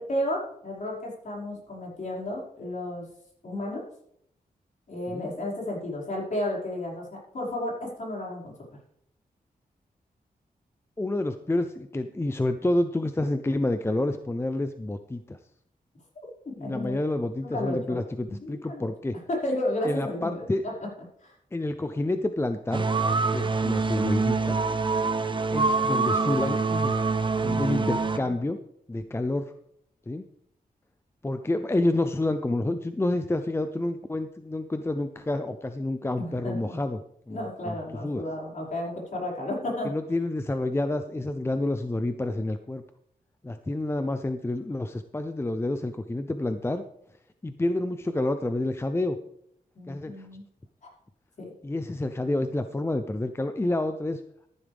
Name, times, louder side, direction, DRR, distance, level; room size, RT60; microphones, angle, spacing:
voice 1, 0.0-3.1 3.4-3.8 4.9-8.5 16.6-17.0 17.4-18.0 18.3-18.9 19.3-20.7 21.2-21.3 27.3-28.3 36.2-36.8 37.3-39.9 49.8-50.4 51.4-51.5, left 1 dB, 55° left, -4 dB, 5.6 m, -33 dB
voice 2, 11.0-15.4 16.6-19.2 19.8-20.6 21.5-22.9 23.3-24.6 25.5-27.0 27.4-28.6 28.9-29.5 30.1-30.3 31.2-37.0 37.3-37.7 38.0-38.3 39.8-42.8 43.4-46.8 47.4-49.2 49.9-50.3 51.6-54.2, left 2 dB, 15° left, 9 dB, 0.6 m, -28 dB
sound 1, 22.7-28.2, right 4 dB, 30° right, 0.8 m, -25 dB
13.5 x 11.0 x 3.5 m, 0.71 s
wide cardioid pair, 110°, 16 cm